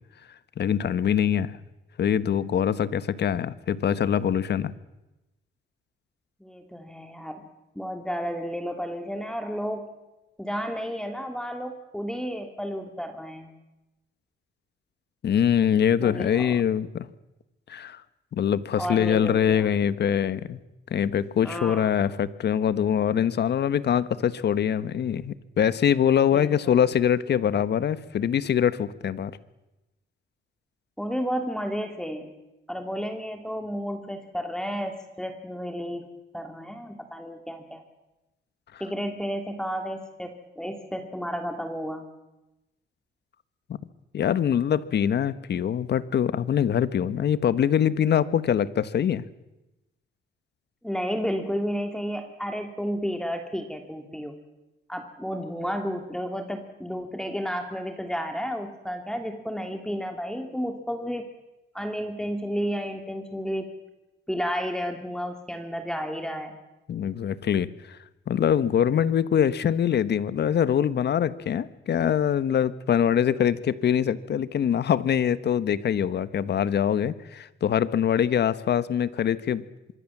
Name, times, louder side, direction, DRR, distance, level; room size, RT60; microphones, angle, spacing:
voice 1, 0.6-1.6 2.0-4.7 15.2-17.1 17.7-18.0 18.3-20.6 20.9-29.3 44.1-49.2 66.9-68.0 68.3-79.6, left 9 dB, 60° left, 15 dB, 1.4 m, -24 dB
voice 2, 6.4-7.4 7.7-9.9 10.4-13.5 16.0-16.6 18.8-19.7 21.4-21.9 26.3-26.7 31.0-32.3 32.7-37.8 38.8-42.1 50.8-54.3 54.9-61.2 61.7-63.7 64.3-66.6, equal, 5° left, 5 dB, 2.9 m, -32 dB
25.0 x 22.5 x 7.4 m, 1.0 s
cardioid pair, 90°, 20 cm